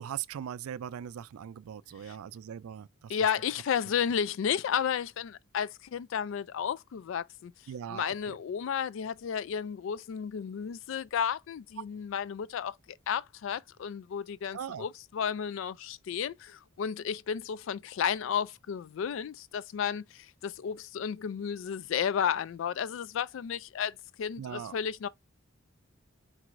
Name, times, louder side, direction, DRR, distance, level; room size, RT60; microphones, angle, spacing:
voice 1, 0.0-3.1 7.7-8.4 14.5-14.9 24.4-24.8, right 9 dB, 90° right, 0.3 m, -40 dB
voice 2, 3.1-7.5 7.9-25.1, left 8 dB, 65° left, 0.3 m, -33 dB
4.6 x 4.0 x 2.5 m
head